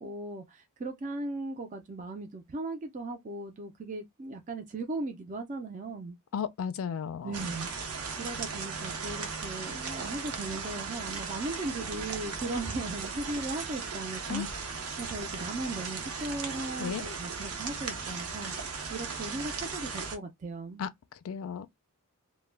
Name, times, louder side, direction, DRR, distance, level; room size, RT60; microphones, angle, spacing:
voice 1, 0.0-6.2 7.2-7.7 8.2-14.4 15.0-18.5 18.9-20.8, right 2 dB, 35° right, 0.4 m, -37 dB
voice 2, 6.3-7.4 14.3-14.5 16.8-17.0 20.8-20.9 21.2-21.7, left 7 dB, 65° left, 0.4 m, -34 dB
sound 1, 7.3-20.2, right 5 dB, 85° right, 0.7 m, -37 dB
2.2 x 2.1 x 3.2 m
head